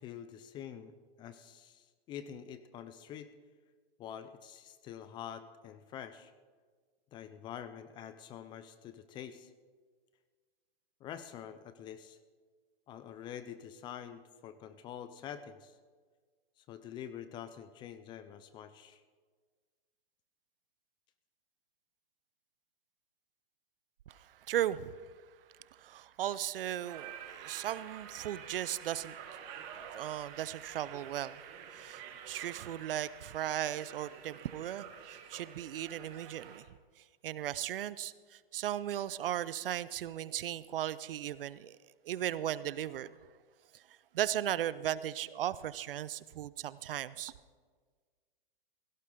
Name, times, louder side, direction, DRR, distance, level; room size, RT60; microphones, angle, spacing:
voice 1, 0.0-3.3 4.0-6.3 7.1-9.5 11.0-12.2 12.9-15.8 16.6-19.0, left 9 dB, 15° left, 12 dB, 0.4 m, -46 dB
voice 2, 24.1-24.9 25.8-29.1 29.9-31.4 31.7-36.6 37.2-41.8 42.0-43.1 44.1-47.3, right 11 dB, 70° right, 17 dB, 0.7 m, -36 dB
sound 1, 26.8-36.6, right 8 dB, 35° right, 1.5 m, -49 dB
16.5 x 16.0 x 3.8 m, 1.5 s
hypercardioid pair, 135°, 29 cm